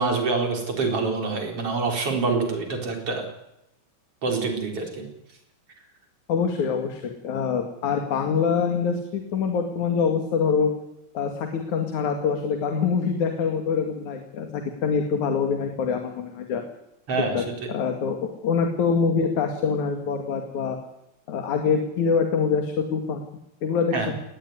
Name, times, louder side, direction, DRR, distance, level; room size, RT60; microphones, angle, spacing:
voice 1, 0.0-3.3 4.2-5.1 17.1-17.4 23.9-24.1, right 4 dB, 45° right, 3 dB, 5.4 m, -26 dB
voice 2, 6.3-10.7 11.2-16.6 17.3-17.4 17.7-20.8 21.3-23.2 23.6-24.1, left 6 dB, 65° left, 5 dB, 3.4 m, -25 dB
19.5 x 18.5 x 9.8 m, 0.87 s
omnidirectional pair, 3.8 m